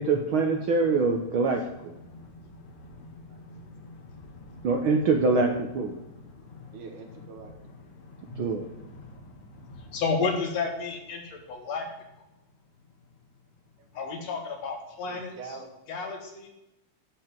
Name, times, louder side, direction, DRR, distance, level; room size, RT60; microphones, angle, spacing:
voice 1, 0.0-1.9 4.6-5.9 8.4-8.6, right 4 dB, 70° right, 3 dB, 1.2 m, -24 dB
voice 2, 2.1-4.7 6.0-6.7 7.9-11.9 13.9-15.3 15.9-16.5, left 4 dB, 60° left, 2 dB, 2.8 m, -34 dB
voice 3, 6.7-7.5 14.2-14.3 15.1-15.7, right 5 dB, 90° right, 4 dB, 3.0 m, -43 dB
10.5 x 5.0 x 7.7 m, 0.93 s
omnidirectional pair, 3.4 m